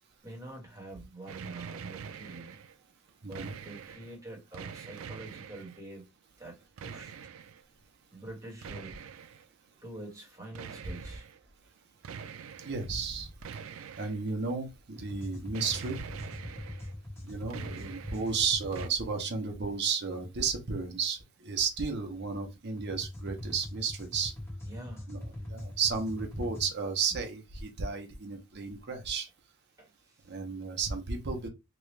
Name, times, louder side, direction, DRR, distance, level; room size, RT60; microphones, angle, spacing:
voice 1, 0.2-2.5 3.2-6.0 6.4-7.1 8.1-8.9 9.8-11.3 24.6-25.1 29.8-30.3, right 2 dB, 15° right, 1.4 m, -46 dB
sound 1, 1.3-2.7 3.1-4.2 4.5-5.8 6.8-7.6 8.6-9.4 10.5-11.4 12.0-12.9 13.4-14.5 15.5-16.9 17.3-18.3 18.7-18.9, right 6 dB, 70° right, 0.4 m, -44 dB
voice 2, 3.2-3.5 12.6-13.3 14.0-16.0 17.2-24.3 25.1-29.3 30.3-31.5, right 5 dB, 55° right, 0.8 m, -33 dB
sound 2, 15.0-18.9 22.8-26.7, left 1 dB, 10° left, 1.1 m, -42 dB
3.1 x 2.4 x 3.2 m
head